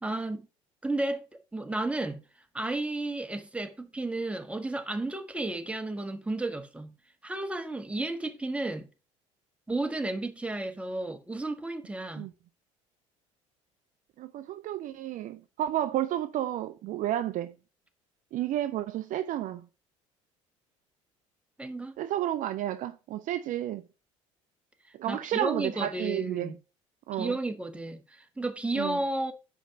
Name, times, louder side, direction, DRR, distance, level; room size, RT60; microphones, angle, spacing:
voice 1, 0.0-0.5 0.8-2.2 2.5-6.9 7.2-8.9 9.7-12.3 21.6-22.0 25.0-26.6 27.1-29.3, right 2 dB, 5° right, 1.2 m, -33 dB
voice 2, 14.2-17.5 18.3-19.7 22.0-23.8 25.0-26.5 27.1-27.4 28.7-29.0, right 12 dB, 50° right, 0.5 m, -31 dB
5.1 x 5.0 x 5.6 m
hypercardioid pair, 65°, 17 cm